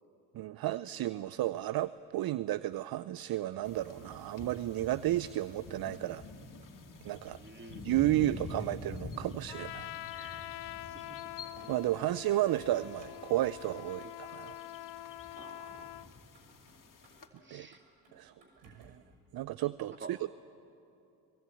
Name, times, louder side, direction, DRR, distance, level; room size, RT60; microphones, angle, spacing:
voice 1, 0.3-6.2 7.0-7.4 7.8-10.7 11.7-14.6 17.5-17.7 18.1-18.3 18.6-19.0 19.3-20.2, right 14 dB, 50° right, 17 dB, 0.6 m, -33 dB
Motor vehicle (road), 1.4-19.1, right 1 dB, 70° right, 6.4 m, -64 dB
sound 1, 3.6-17.3, left 3 dB, 40° left, 2.6 m, -48 dB
voice 2, 7.4-7.9 10.9-11.2 15.4-15.9 17.4-17.8 18.4-18.5 20.0-20.1, right 3 dB, 25° right, 5 dB, 2.6 m, -49 dB
Trumpet, 9.5-16.1, left 16 dB, 60° left, 0.6 m, -45 dB
24.0 x 20.5 x 8.6 m, 2.7 s
hypercardioid pair, 55°, 46 cm